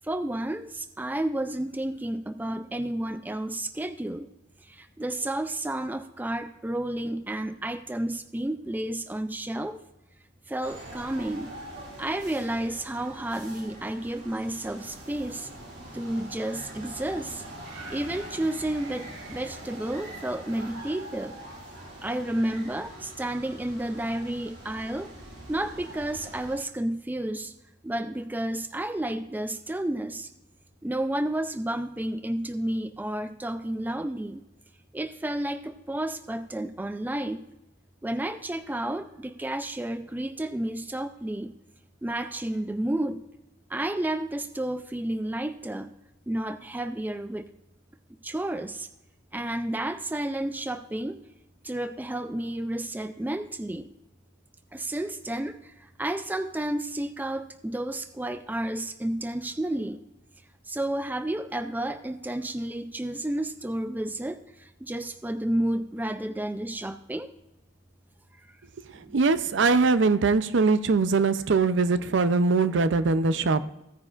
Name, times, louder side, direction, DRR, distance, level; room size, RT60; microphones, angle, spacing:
voice 1, 0.0-4.3 4.6-9.8 10.5-11.5 12.0-15.5 15.9-17.4 17.9-21.4 22.0-25.1 25.5-27.5 27.8-30.3 30.8-34.4 34.9-37.5 38.0-41.5 42.0-43.2 43.7-45.9 46.3-47.5 48.2-48.9 49.3-51.2 51.6-53.9 54.7-60.0 60.7-67.3 69.1-69.2, right 1 dB, 10° right, 10 dB, 0.4 m, -31 dB
sound 1, 10.6-26.6, right 1 dB, 90° right, 4.2 m, -43 dB
voice 2, 68.9-73.7, right 4 dB, 65° right, 13 dB, 0.5 m, -22 dB
16.0 x 9.6 x 2.4 m, 0.92 s
head